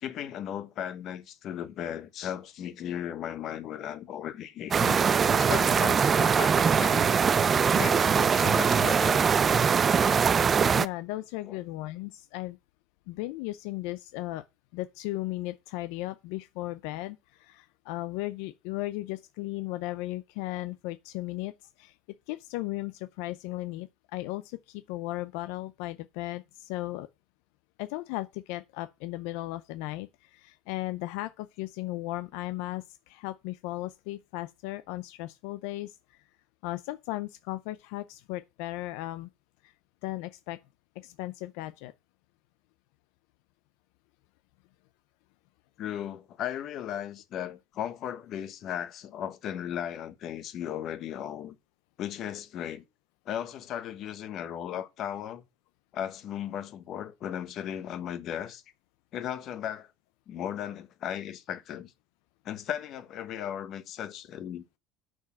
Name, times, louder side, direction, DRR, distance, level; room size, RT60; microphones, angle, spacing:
voice 1, 0.0-7.1 7.7-9.3 11.4-11.6 45.8-51.5 52.0-52.8 53.2-55.4 55.9-58.6 59.1-59.9 60.3-61.9 62.4-64.6, left 10 dB, 45° left, 1.2 m, -36 dB
sound 1, 4.7-10.9, right 6 dB, 25° right, 0.4 m, -22 dB
voice 2, 10.6-12.6 13.1-14.4 14.7-21.5 21.8-21.9 22.3-27.1 27.8-36.0 36.6-39.3 39.6-39.7 40.0-40.6 41.0-41.9, left 17 dB, 80° left, 0.5 m, -36 dB
6.5 x 6.3 x 7.3 m
cardioid pair, 145°, 0 cm